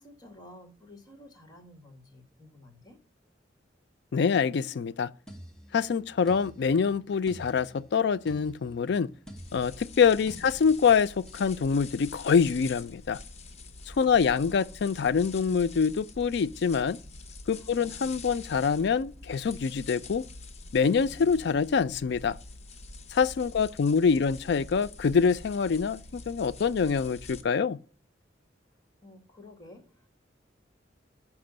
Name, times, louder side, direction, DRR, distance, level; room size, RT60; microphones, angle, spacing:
voice 1, 0.0-3.0 10.2-10.5 13.9-14.7 17.5-18.2 23.5-24.4 29.0-30.1, left 1 dB, 20° left, 1.9 m, -52 dB
voice 2, 4.1-5.1 5.7-9.1 9.5-13.2 14.0-17.0 17.5-20.2 20.7-22.4 23.1-27.8, left 6 dB, 65° left, 0.4 m, -25 dB
sound 1, 5.3-11.6 12.3-12.6, equal, 5° left, 1.2 m, -50 dB
sound 2, 9.4-27.4, left 3 dB, 35° left, 0.8 m, -46 dB
6.0 x 5.9 x 6.5 m
head